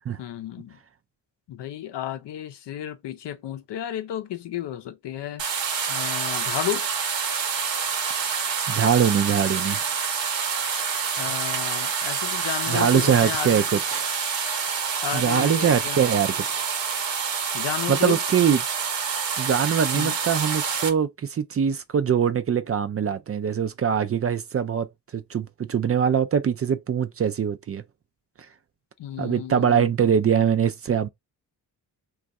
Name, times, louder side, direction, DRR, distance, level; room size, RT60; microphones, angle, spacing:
voice 1, 0.2-0.8 1.5-5.4 5.9-6.9 11.2-13.6 15.0-16.0 17.5-18.2 19.9-20.2 29.0-29.9, left 11 dB, 75° left, 0.6 m, -32 dB
sound 1, 5.4-20.9, right 6 dB, 90° right, 0.9 m, -27 dB
voice 2, 8.7-9.9 11.6-11.9 12.7-14.1 15.1-16.6 17.9-18.6 19.4-27.8 29.2-31.1, right 7 dB, 35° right, 0.4 m, -23 dB
2.5 x 2.4 x 4.0 m
cardioid pair, 70°, 42 cm